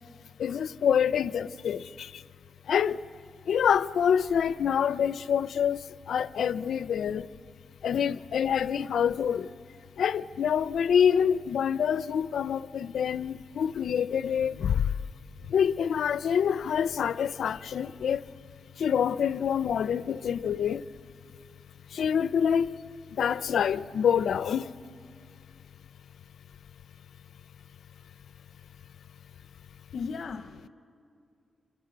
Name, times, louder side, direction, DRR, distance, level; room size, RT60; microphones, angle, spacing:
voice 1, 0.4-2.2 2.7-3.0 3.5-7.3 7.8-9.5 10.0-14.9 15.5-18.2 18.8-20.8 21.9-22.7 23.1-24.7, left 8 dB, 80° left, 0.5 m, -26 dB
voice 2, 29.9-30.7, left 5 dB, 65° left, 0.9 m, -36 dB
27.5 x 21.0 x 7.9 m
wide cardioid pair, 110°, 0 cm